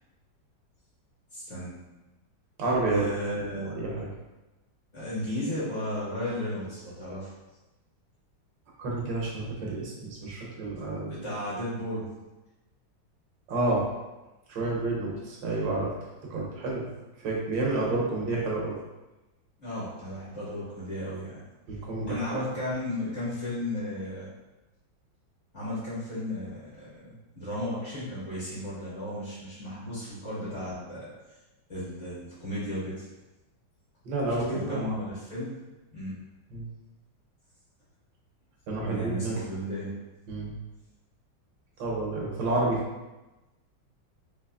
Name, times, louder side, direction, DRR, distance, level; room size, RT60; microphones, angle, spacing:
voice 1, 1.3-1.8 2.9-3.8 4.9-7.3 11.0-12.0 19.6-21.4 22.0-24.3 25.5-31.1 31.7-33.1 34.5-35.6 35.9-36.2 38.9-39.9, left 1 dB, 40° left, -10 dB, 1.5 m, -34 dB
voice 2, 2.6-3.1 3.3-4.1 8.8-11.2 13.5-13.8 14.5-15.9 16.3-16.9 17.2-18.8 21.7-22.4 34.0-35.0 36.5-36.7 38.7-39.4 40.3-40.5 41.8-42.8, right 2 dB, 75° right, -3 dB, 1.3 m, -30 dB
4.0 x 2.9 x 2.3 m, 1.1 s
omnidirectional pair, 2.1 m